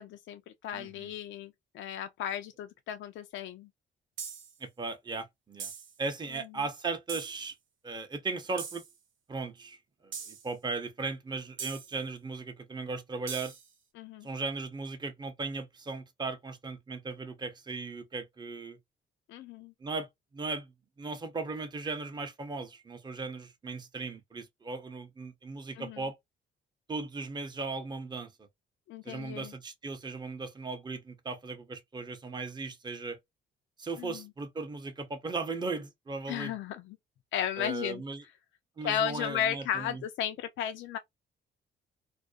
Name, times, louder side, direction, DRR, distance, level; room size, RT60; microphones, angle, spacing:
voice 1, 0.0-3.7 14.0-14.3 19.3-19.7 25.8-26.0 28.9-29.5 34.0-34.2 36.3-37.0 37.3-38.0 38.8-41.0, left 9 dB, 70° left, 0.4 m, -34 dB
voice 2, 0.7-1.1 4.6-5.7 6.0-7.6 7.8-8.8 9.3-9.8 10.0-13.5 14.2-18.8 19.8-20.7 21.0-26.2 26.9-28.5 29.0-33.2 33.8-36.6 37.6-38.2 38.8-40.0, right 3 dB, 20° right, 0.6 m, -37 dB
sound 1, 4.2-4.6 5.6-5.9 7.1-7.4 8.6-8.9 10.1-10.5 11.6-12.0 13.3-13.7, right 6 dB, 75° right, 0.8 m, -41 dB
2.4 x 2.1 x 2.4 m
cardioid pair, 90°, 20 cm